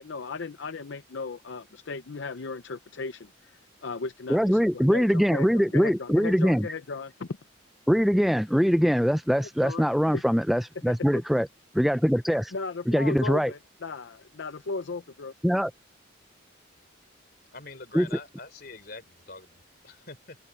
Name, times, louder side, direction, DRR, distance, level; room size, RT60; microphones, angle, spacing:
voice 1, 0.0-7.3 9.4-9.8 10.1-10.2 12.5-15.3, left 4 dB, 65° left, 0.6 m, -36 dB
voice 2, 4.3-6.7 7.9-11.5 11.7-12.5 12.9-13.5 15.4-15.7 17.9-18.1, equal, ahead, 0.3 m, -23 dB
voice 3, 17.5-20.4, left 3 dB, 50° left, 3.9 m, -44 dB
head